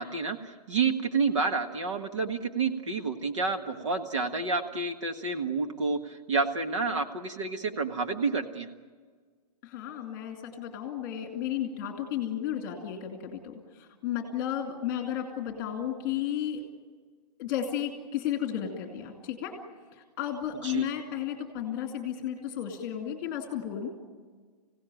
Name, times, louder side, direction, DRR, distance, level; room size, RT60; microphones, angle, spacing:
voice 1, 0.0-8.7 20.6-20.9, right 4 dB, 50° right, 6 dB, 1.6 m, -29 dB
voice 2, 9.6-16.6 17.4-19.5 20.2-24.0, left 10 dB, 15° left, 3 dB, 2.4 m, -33 dB
25.5 x 17.0 x 9.1 m, 1.5 s
hypercardioid pair, 180°, 21 cm